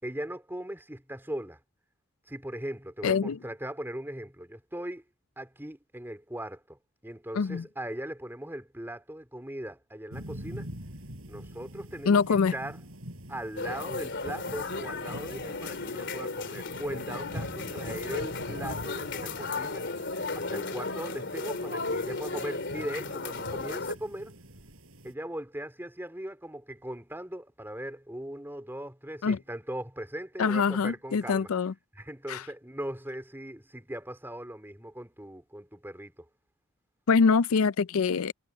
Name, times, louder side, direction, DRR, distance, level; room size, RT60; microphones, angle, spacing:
voice 1, 0.0-1.6 2.3-5.0 5.3-10.7 11.3-12.8 13.3-24.3 25.0-31.5 32.0-36.3, right 1 dB, 10° right, 3.5 m, -39 dB
voice 2, 3.0-3.4 7.3-7.6 12.0-12.5 29.2-29.4 30.4-31.7 32.3-32.4 37.1-38.3, left 5 dB, 80° left, 0.5 m, -24 dB
sound 1, 10.1-25.1, equal, 70° right, 7.4 m, -45 dB
sound 2, 13.6-23.9, left 3 dB, 55° left, 3.3 m, -35 dB
head